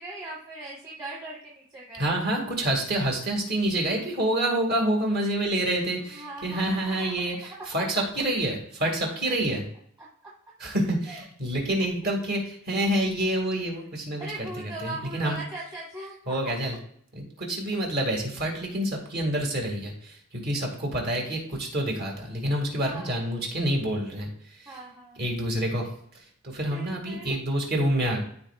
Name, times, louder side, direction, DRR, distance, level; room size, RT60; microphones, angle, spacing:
voice 1, 0.0-2.1 6.1-7.1 9.0-9.1 10.0-10.3 11.1-11.2 11.8-11.9 14.2-16.5 22.8-23.1 24.6-25.2 26.7-27.3, right 2 dB, 20° right, -6 dB, 1.4 m, -40 dB
voice 2, 2.0-9.7 10.6-15.4 16.3-16.8 17.1-24.8 25.2-28.2, right 1 dB, 45° right, 1 dB, 2.2 m, -28 dB
13.5 x 4.6 x 2.4 m, 0.64 s
head